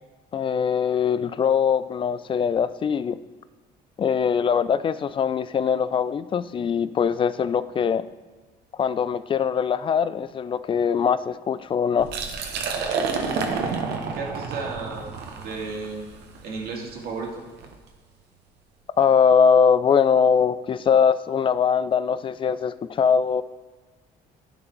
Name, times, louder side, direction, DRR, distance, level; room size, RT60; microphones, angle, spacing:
voice 1, 0.3-3.2 4.0-8.0 8.8-12.1 19.0-23.4, left 7 dB, 30° left, 15 dB, 0.3 m, -22 dB
Liquid, 12.0-17.8, right 5 dB, 80° right, 1.0 m, -30 dB
voice 2, 13.5-15.1 15.4-17.4, right 4 dB, 65° right, -1 dB, 2.0 m, -34 dB
11.0 x 4.0 x 4.5 m, 1.4 s
cardioid pair, 110°, 17 cm